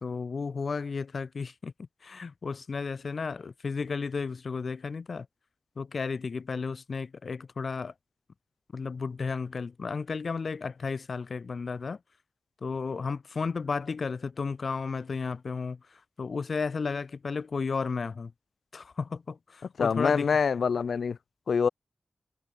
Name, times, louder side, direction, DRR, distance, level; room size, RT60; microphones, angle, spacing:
voice 1, 0.0-1.7 2.0-5.3 5.8-7.9 8.7-12.0 12.6-18.3 18.7-20.3, left 5 dB, 65° left, 1.6 m, -33 dB
voice 2, 19.8-21.2 21.5-21.7, left 6 dB, 90° left, 0.6 m, -25 dB
wide cardioid pair, 85°, 0 cm